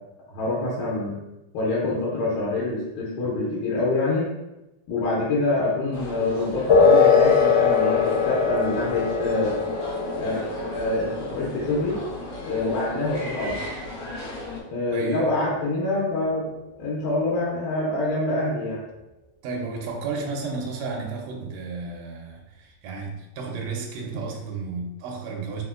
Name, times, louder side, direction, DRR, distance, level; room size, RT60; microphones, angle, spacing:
voice 1, 0.3-1.2 1.5-4.3 4.9-9.5 10.2-12.0 12.4-13.7 14.7-16.5 16.8-18.8, left 2 dB, 90° left, -6 dB, 2.2 m, -26 dB
sound 1, 5.9-14.6, left 2 dB, 75° left, 2.1 m, -37 dB
sound 2, 6.7-14.7, left 5 dB, 50° left, 0.4 m, -22 dB
voice 2, 14.9-15.3 19.4-25.6, right 4 dB, 80° right, 0 dB, 1.5 m, -33 dB
4.8 x 2.1 x 2.4 m, 0.95 s
omnidirectional pair, 3.5 m